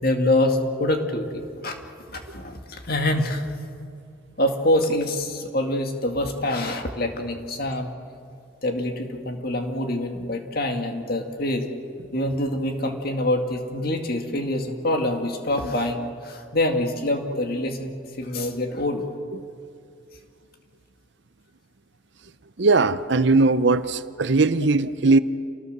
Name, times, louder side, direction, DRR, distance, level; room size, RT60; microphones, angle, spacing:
voice 1, 0.0-1.8 2.1-3.4 4.4-7.9 8.6-11.7 12.1-19.0, left 1 dB, 45° left, 2.1 m, -25 dB
voice 2, 22.6-25.2, right 3 dB, 60° right, 0.7 m, -19 dB
28.0 x 19.5 x 6.8 m
head